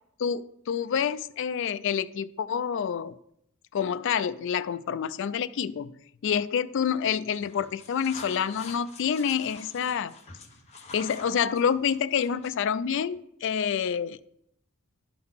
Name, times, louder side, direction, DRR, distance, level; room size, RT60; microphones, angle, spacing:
voice 1, 0.2-3.2 3.7-6.0 6.2-10.1 10.9-14.2, left 7 dB, 55° left, 15 dB, 0.3 m, -28 dB
sound 1, 7.3-12.6, left 4 dB, 30° left, 0.9 m, -47 dB
11.0 x 3.9 x 5.5 m, 0.76 s
head